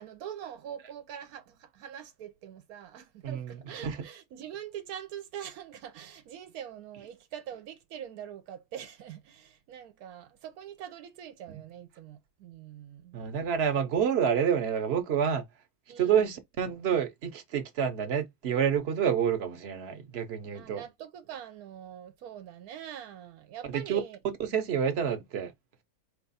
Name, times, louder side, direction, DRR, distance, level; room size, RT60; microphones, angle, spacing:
voice 1, 0.0-13.2 15.9-16.1 20.5-24.2, right 9 dB, 85° right, 1.1 m, -44 dB
voice 2, 3.2-4.0 13.1-15.4 16.0-20.8 23.7-24.0 24.4-25.5, right 8 dB, 55° right, 0.9 m, -28 dB
4.4 x 2.3 x 4.0 m
omnidirectional pair, 1.6 m